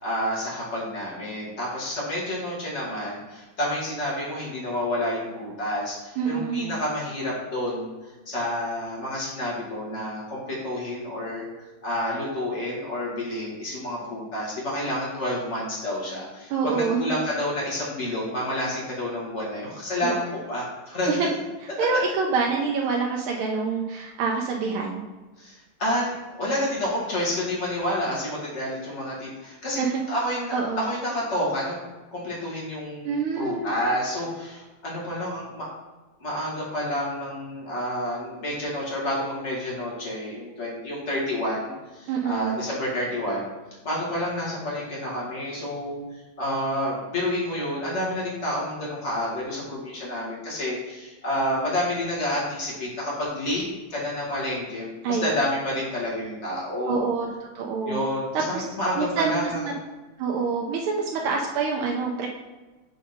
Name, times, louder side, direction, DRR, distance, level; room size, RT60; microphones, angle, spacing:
voice 1, 0.0-7.9 8.3-11.4 11.8-21.1 25.4-29.8 30.1-31.8 32.1-35.7 36.2-43.5 43.8-46.0 46.4-53.6 53.9-57.0 57.9-59.7, left 1 dB, 35° left, -6 dB, 2.1 m, -29 dB
voice 2, 6.2-6.7 16.5-17.1 20.0-20.2 21.1-21.3 21.8-25.0 29.8-30.0 30.5-30.8 33.0-33.8 42.1-42.6 55.0-55.2 56.9-58.0 58.3-58.6 59.0-59.7 60.2-62.3, right 5 dB, 85° right, 0 dB, 1.5 m, -26 dB
5.2 x 5.1 x 4.3 m, 1.2 s
omnidirectional pair, 2.3 m